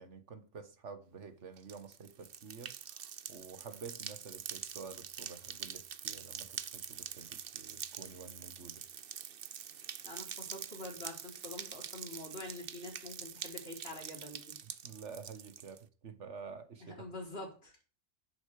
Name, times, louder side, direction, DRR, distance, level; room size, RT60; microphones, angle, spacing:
voice 1, 0.0-8.8 14.8-17.1, right 5 dB, 80° right, 1.7 m, -49 dB
sound 1, 1.6-15.8, right 8 dB, 55° right, 0.9 m, -45 dB
voice 2, 10.0-14.6 16.8-17.8, left 2 dB, 55° left, 4.3 m, -46 dB
10.5 x 10.0 x 4.9 m
omnidirectional pair, 1.2 m